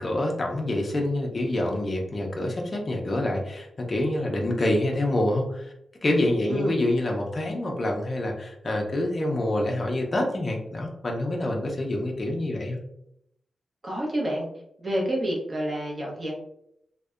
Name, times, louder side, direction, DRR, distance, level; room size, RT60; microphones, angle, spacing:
voice 1, 0.0-5.7 6.0-12.8, left 1 dB, 25° left, 0 dB, 0.4 m, -26 dB
voice 2, 13.8-14.5 14.8-16.4, right 1 dB, 25° right, -3 dB, 0.7 m, -28 dB
2.6 x 2.1 x 2.3 m, 0.77 s
wide cardioid pair, 165°, 0 cm